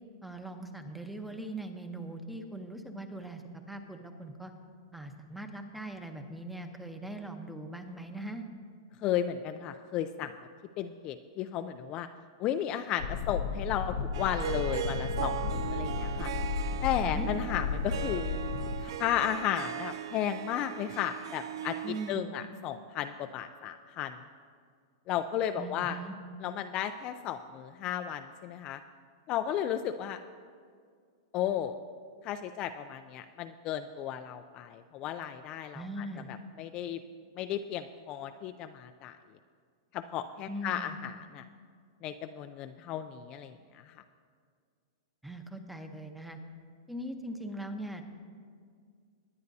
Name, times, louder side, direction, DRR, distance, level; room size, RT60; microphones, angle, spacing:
voice 1, 0.2-4.5 4.9-8.4 17.1-17.3 21.8-22.4 25.6-26.2 35.7-36.3 40.5-41.0 45.2-46.4 46.9-48.0, right 1 dB, ahead, 6 dB, 0.8 m, -40 dB
voice 2, 9.0-10.3 10.8-12.1 12.4-16.3 16.8-18.3 18.8-21.8 22.1-24.2 25.1-26.0 26.4-28.8 29.3-30.2 31.3-31.8 32.2-37.0 37.3-39.1 39.9-41.4 42.0-44.0, left 10 dB, 35° left, 8 dB, 0.3 m, -34 dB
sound 1, 13.0-18.8, left 6 dB, 80° left, 0.7 m, -34 dB
Harp, 14.1-22.1, right 11 dB, 70° right, 0.5 m, -38 dB
20.5 x 9.4 x 2.7 m, 2.1 s
hypercardioid pair, 145°, 3 cm